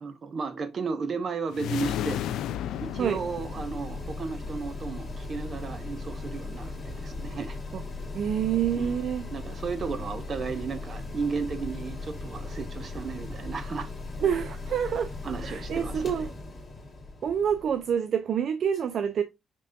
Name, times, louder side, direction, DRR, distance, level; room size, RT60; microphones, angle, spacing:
voice 1, 0.0-2.2 2.7-7.6 8.8-8.9 9.3-13.9 15.2-16.1, right 5 dB, 45° right, 0.7 m, -34 dB
sound 1, 1.5-4.1, left 10 dB, 80° left, 0.3 m, -33 dB
Mechanical fan, 1.7-18.0, left 3 dB, 30° left, 1.9 m, -38 dB
voice 2, 8.1-9.3 14.2-15.1 15.4-16.3 17.2-19.2, right 8 dB, 60° right, 0.3 m, -27 dB
5.3 x 3.2 x 2.5 m
cardioid pair, 90°, 0 cm